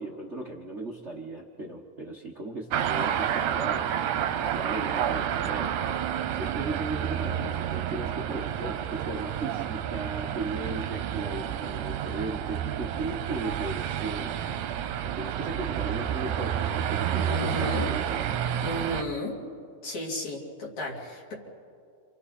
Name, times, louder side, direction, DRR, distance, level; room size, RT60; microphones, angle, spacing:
voice 1, 0.0-3.9 4.4-5.7 6.4-14.3 15.0-18.2, right 2 dB, 50° right, 0 dB, 0.8 m, -36 dB
sound 1, 2.7-19.0, right 10 dB, 75° right, 2.2 m, -30 dB
voice 2, 17.3-17.9 18.6-19.4 19.8-21.3, left 1 dB, 60° left, -2 dB, 4.2 m, -33 dB
29.5 x 27.0 x 4.3 m, 2.3 s
omnidirectional pair, 3.7 m